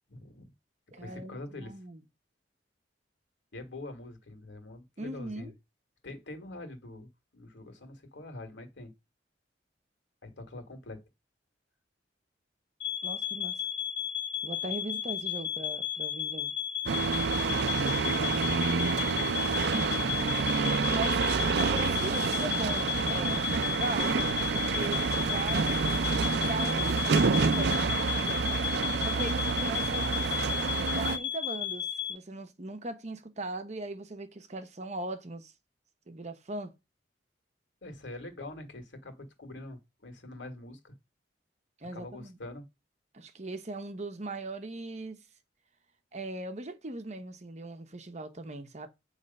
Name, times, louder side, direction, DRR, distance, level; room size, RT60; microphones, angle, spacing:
voice 1, 0.1-0.5 1.0-1.8 3.5-5.5 6.0-8.9 10.2-11.0 17.4-18.7 19.1-19.7 37.8-40.9 41.9-42.6, left 2 dB, 90° left, 1.7 m, -44 dB
voice 2, 0.9-2.0 5.0-5.5 13.0-13.6 14.4-16.5 19.7-20.1 20.9-21.2 21.6-24.2 24.5-25.9 26.4-27.0 27.3-28.5 29.0-30.3 30.9-35.5 36.1-36.7 41.8-42.4 43.1-45.2 46.1-48.9, right 2 dB, 40° right, 0.9 m, -39 dB
sound 1, 12.8-32.1, left 9 dB, 70° left, 1.0 m, -34 dB
sound 2, 16.9-31.2, right 4 dB, 65° right, 0.5 m, -28 dB
7.9 x 3.3 x 5.3 m
head